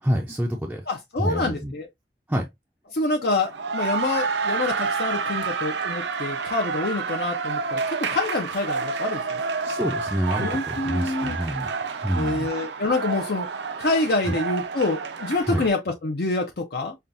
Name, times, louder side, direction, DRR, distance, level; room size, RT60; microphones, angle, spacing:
voice 1, 0.0-0.8 1.2-1.7 2.3-2.5 9.6-11.7 12.0-12.5 14.3-14.4 15.4-15.6, equal, 10° right, 0.4 m, -27 dB
voice 2, 0.9-1.9 2.9-9.4 10.4-11.4 12.2-13.5 13.8-17.0, left 2 dB, 60° left, 0.6 m, -26 dB
sound 1, 3.3-15.7, right 5 dB, 75° right, 0.5 m, -29 dB
5.5 x 2.3 x 2.5 m
head